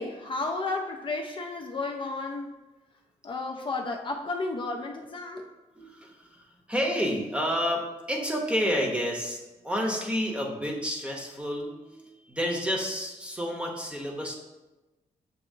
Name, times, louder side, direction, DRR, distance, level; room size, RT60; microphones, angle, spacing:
voice 1, 0.0-2.6 3.2-5.5, left 3 dB, 40° left, 2 dB, 0.4 m, -32 dB
voice 2, 5.8-14.4, equal, 10° right, 1 dB, 0.7 m, -30 dB
7.1 x 2.7 x 2.7 m, 1.1 s
cardioid pair, 120°, 13 cm